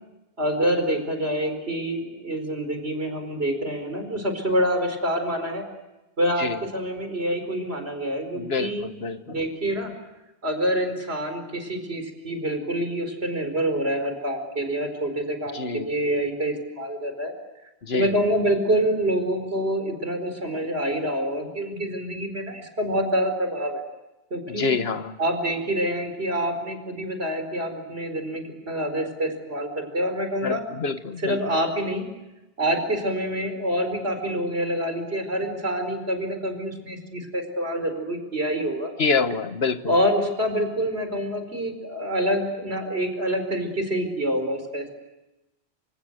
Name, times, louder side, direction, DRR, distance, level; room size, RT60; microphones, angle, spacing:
voice 1, 0.4-5.6 6.2-8.9 9.3-9.9 10.4-17.3 17.9-23.8 24.3-24.7 25.2-30.6 31.2-32.1 32.6-38.9 39.9-45.0, equal, 85° right, 6 dB, 5.0 m, -26 dB
voice 2, 8.3-9.3 15.5-15.9 17.8-18.1 24.6-25.1 30.4-31.4 39.0-39.8, left 4 dB, 80° left, 10 dB, 1.6 m, -26 dB
28.0 x 27.0 x 8.0 m, 1.0 s
omnidirectional pair, 1.0 m